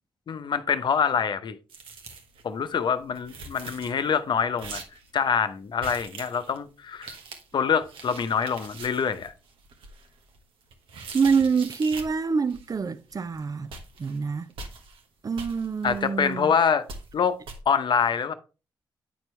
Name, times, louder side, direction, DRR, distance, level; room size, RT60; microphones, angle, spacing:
voice 1, 0.3-1.6 2.4-4.8 5.1-7.1 7.5-9.3 15.8-16.8 17.1-17.4 17.7-18.3, left 6 dB, 60° left, 0.8 m, -25 dB
sound 1, 1.7-2.4 2.7-2.8 3.0-4.1 4.6-5.1 5.8-6.6 6.9-12.2 12.5-12.8 13.1-13.4 13.6-15.0 15.4-16.6 16.9-17.2 17.4-17.6, right 3 dB, 80° right, 1.2 m, -43 dB
voice 2, 11.1-13.7 14.0-14.5 15.2-16.5, right 5 dB, 45° right, 0.7 m, -26 dB
9.2 x 4.5 x 3.2 m
supercardioid pair, 50°, 9 cm